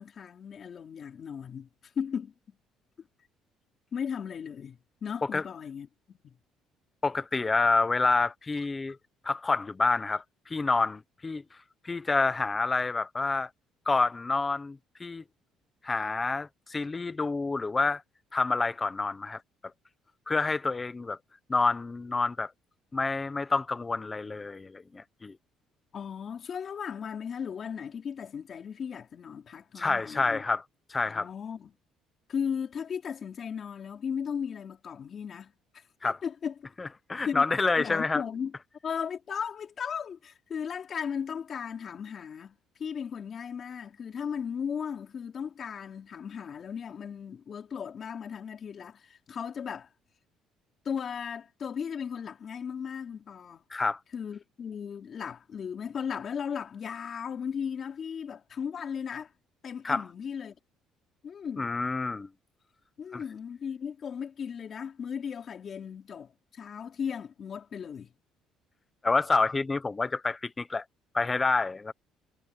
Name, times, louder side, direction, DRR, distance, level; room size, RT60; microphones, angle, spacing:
voice 1, 0.0-1.7 2.0-2.5 3.9-6.3 25.9-30.4 31.0-31.7 32.3-36.5 37.2-37.4 37.8-38.5 38.8-42.5 42.8-49.9 50.8-53.6 54.1-59.3 59.6-60.6 61.2-61.7 63.0-68.1, left 7 dB, 30° left, 4.3 m, -36 dB
voice 2, 7.0-9.0 9.2-11.6 11.8-13.5 13.9-15.2 15.8-18.0 18.3-19.4 20.3-21.2 21.5-22.5 22.9-25.4 29.8-30.6 30.9-31.3 36.0-36.2 36.8-38.2 53.7-54.0 59.8-60.0 61.6-62.3 63.1-63.2 69.0-70.8 71.1-71.9, left 3 dB, 15° left, 0.8 m, -28 dB
cardioid pair, 180°, 0 cm